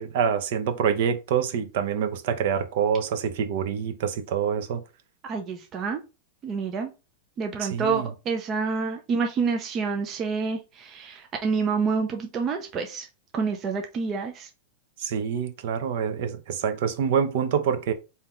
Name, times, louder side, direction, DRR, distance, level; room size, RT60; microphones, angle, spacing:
voice 1, 0.0-4.8 7.6-8.1 15.0-17.9, right 7 dB, 55° right, 0.8 m, -26 dB
voice 2, 5.2-6.0 6.4-6.9 7.4-13.1 13.3-14.5, right 5 dB, 25° right, 0.5 m, -28 dB
3.7 x 2.8 x 4.4 m
supercardioid pair, 165°, 0 cm